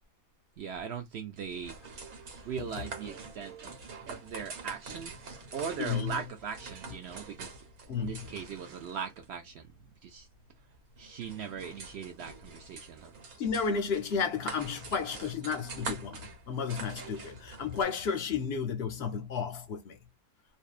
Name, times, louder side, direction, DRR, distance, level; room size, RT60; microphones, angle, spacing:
voice 1, 0.6-1.8 2.4-3.7 4.1-9.7 10.0-10.3 11.0-13.1, right 7 dB, 70° right, 0.6 m, -40 dB
sound 1, 1.4-17.8, right 4 dB, 85° right, 1.4 m, -45 dB
voice 2, 5.8-6.2 7.9-8.3 13.4-20.0, left 6 dB, 60° left, 0.7 m, -32 dB
2.6 x 2.2 x 2.3 m
omnidirectional pair, 1.5 m